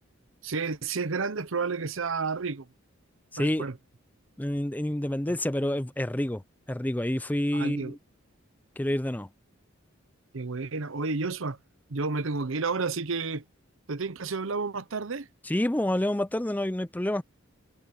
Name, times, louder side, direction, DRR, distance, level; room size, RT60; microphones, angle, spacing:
voice 1, 0.4-2.7 3.4-3.7 5.3-5.4 7.5-8.0 10.3-11.6 11.9-13.4 13.9-15.3, right 4 dB, 75° right, 0.9 m, -31 dB
voice 2, 3.3-3.7 4.4-6.4 6.7-8.0 8.8-9.3 15.4-17.2, left 1 dB, 10° left, 0.5 m, -28 dB
head